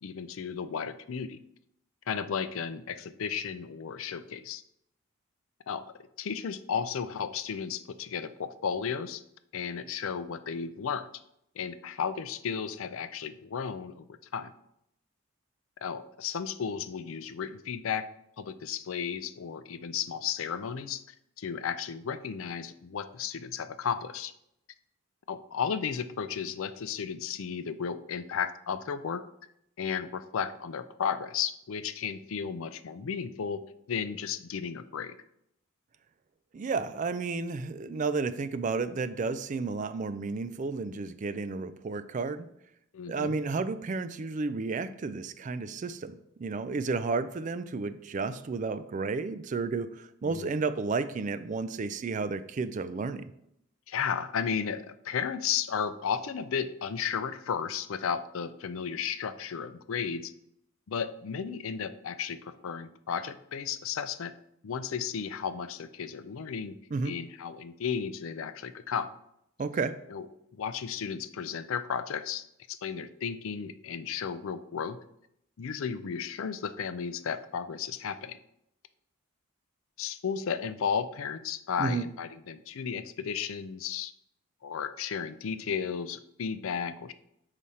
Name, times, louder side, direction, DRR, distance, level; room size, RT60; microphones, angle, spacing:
voice 1, 0.0-1.4 2.1-4.6 5.7-5.8 6.2-9.2 9.5-11.1 11.6-14.1 14.3-14.5 15.8-18.1 18.4-21.0 21.4-24.3 25.3-29.2 29.8-33.6 33.9-35.2 42.9-43.3 50.2-50.5 53.9-60.3 60.9-64.3 64.6-66.8 67.0-69.1 70.1-70.3 70.5-75.0 75.6-78.4 80.0-84.1 84.6-87.1, left 7 dB, 70° left, 12 dB, 0.4 m, -34 dB
voice 2, 36.5-42.5 43.1-53.3 66.9-67.1 69.6-69.9 81.8-82.1, right 4 dB, 35° right, 12 dB, 0.3 m, -32 dB
5.6 x 4.9 x 4.2 m, 0.77 s
head